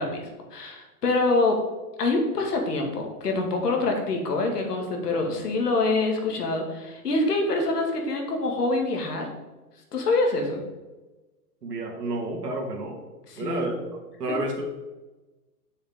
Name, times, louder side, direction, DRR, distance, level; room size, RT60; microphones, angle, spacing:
voice 1, 0.0-1.6 2.0-9.3 9.9-10.6 13.3-13.7, left 2 dB, 80° left, 2 dB, 2.2 m, -25 dB
voice 2, 11.6-13.0 13.4-13.8 14.2-14.6, right 2 dB, 90° right, 1 dB, 2.2 m, -30 dB
7.5 x 6.4 x 3.7 m, 1.1 s
hypercardioid pair, 155°, 46 cm